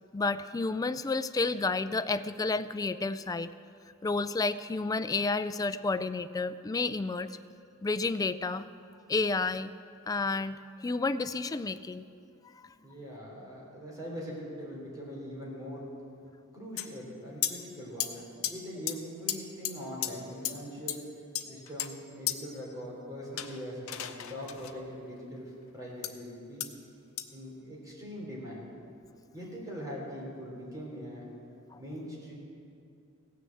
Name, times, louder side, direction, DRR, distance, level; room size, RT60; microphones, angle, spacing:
voice 1, 0.1-3.5 4.0-7.4 7.8-8.7 9.1-9.7 10.1-12.0 12.5-12.7 31.7-31.8, left 3 dB, 15° left, 12 dB, 0.3 m, -31 dB
voice 2, 12.8-15.9 16.5-21.0 21.4-26.7 27.3-28.6 29.3-31.3 31.7-32.3, equal, 15° right, -4 dB, 3.4 m, -42 dB
sound 1, 16.8-16.9 17.4-17.5 18.0-18.1 18.4-18.5 18.9-19.0 19.3-19.4 19.6-19.7 20.0-20.1 20.4-20.5 20.9-21.0 21.3-21.9 22.3-22.4 23.4-24.7 26.0-26.1 26.6-26.7 27.2-27.3, left 12 dB, 75° left, 0.7 m, -33 dB
16.5 x 6.6 x 7.7 m, 2.6 s
head